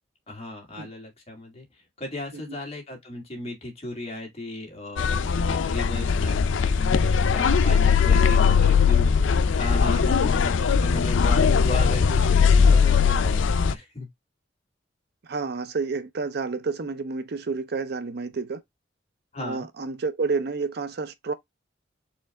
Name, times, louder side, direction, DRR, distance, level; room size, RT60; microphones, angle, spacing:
voice 1, 0.3-1.7 2.0-14.1 19.3-19.7, left 2 dB, 35° left, 1.8 m, -36 dB
sound 1, 5.0-13.7, left 6 dB, 85° left, 0.4 m, -20 dB
voice 2, 15.3-18.6 19.4-21.3, right 4 dB, 60° right, 0.5 m, -30 dB
4.4 x 3.3 x 3.5 m
head